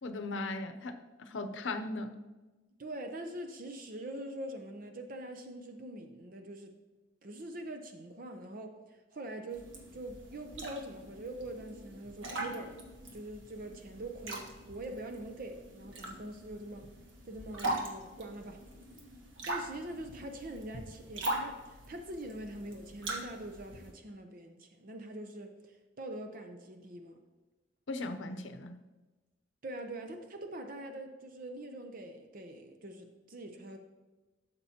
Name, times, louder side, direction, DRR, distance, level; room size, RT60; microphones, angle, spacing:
voice 1, 0.0-2.2 27.9-28.8, left 2 dB, 80° left, 9 dB, 0.7 m, -38 dB
voice 2, 2.8-6.7 7.2-12.8 13.1-16.9 17.2-18.6 19.5-27.1 29.6-33.8, right 1 dB, 45° right, 5 dB, 0.7 m, -44 dB
sound 1, 9.5-23.9, right 1 dB, 90° right, 1.6 m, -42 dB
12.5 x 6.8 x 2.9 m, 1.2 s
head